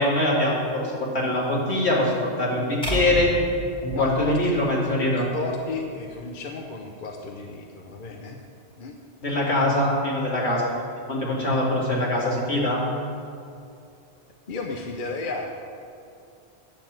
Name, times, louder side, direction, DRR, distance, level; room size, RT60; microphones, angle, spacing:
voice 1, 0.0-3.3 3.8-5.3 9.2-10.7 11.1-12.8, left 1 dB, 75° left, -5 dB, 2.7 m, -23 dB
sound 1, 2.8-5.1, equal, 5° left, 2.1 m, -32 dB
voice 2, 3.9-4.5 5.1-8.4 8.8-9.0 14.5-15.5, left 3 dB, 50° left, 2 dB, 0.9 m, -33 dB
10.5 x 6.9 x 7.4 m, 2.5 s
omnidirectional pair, 1.1 m